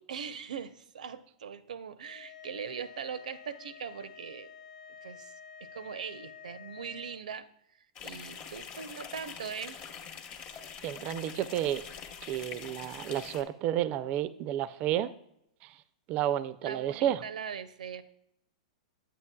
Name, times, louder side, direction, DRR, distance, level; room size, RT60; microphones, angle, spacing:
voice 1, 0.1-4.5 5.0-5.3 5.6-9.8 10.5-10.6 16.6-18.0, right 7 dB, 90° right, 14 dB, 0.6 m, -41 dB
sound 1, 2.0-7.2, left 8 dB, 80° left, 0.5 m, -50 dB
sound 2, 8.0-13.4, left 6 dB, 30° left, 0.9 m, -44 dB
voice 2, 10.8-11.8 12.3-15.1 15.6-15.7 16.1-17.2, right 11 dB, 35° right, 15 dB, 0.3 m, -31 dB
8.9 x 8.4 x 2.2 m, 0.76 s
hypercardioid pair, 140°, 4 cm